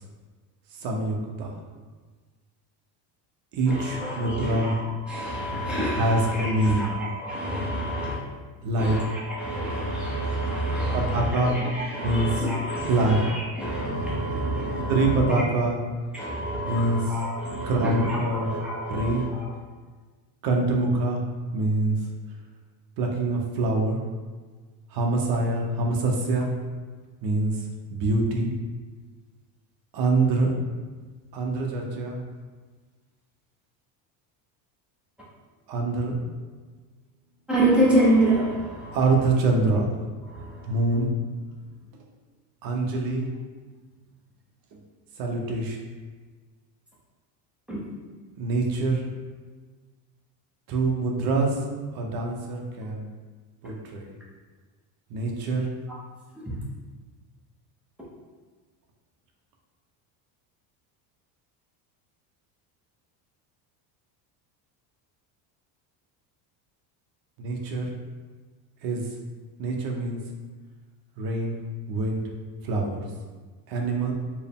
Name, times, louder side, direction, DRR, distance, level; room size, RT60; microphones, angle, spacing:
voice 1, 0.7-1.6 3.5-4.8 6.0-7.0 8.6-9.0 10.9-11.6 12.0-12.4 12.9-13.2 14.9-15.8 16.7-17.1 17.6-18.5 18.9-19.2 20.4-21.2 21.5-22.1 23.0-24.0 24.9-26.5 27.2-28.5 29.9-30.5 31.3-32.2 35.7-36.2 38.9-39.9 40.6-41.1 42.6-43.3 44.7-44.8 45.2-45.8 48.4-49.0 50.7-51.7 51.9-53.1 53.6-54.1 55.1-55.7 67.4-67.9 68.8-69.1 69.6-70.2 71.2-71.6 71.9-72.3 72.6-73.0 73.7-74.1, right 2 dB, 50° right, 1 dB, 0.7 m, -25 dB
voice 2, 3.7-8.2 8.8-15.4 16.1-19.5 37.5-39.0 40.3-40.7 47.7-47.8 53.6-53.7 56.3-56.6, right 1 dB, 5° right, -7 dB, 0.5 m, -27 dB
4.5 x 2.1 x 3.5 m, 1.4 s
cardioid pair, 160°, 45 cm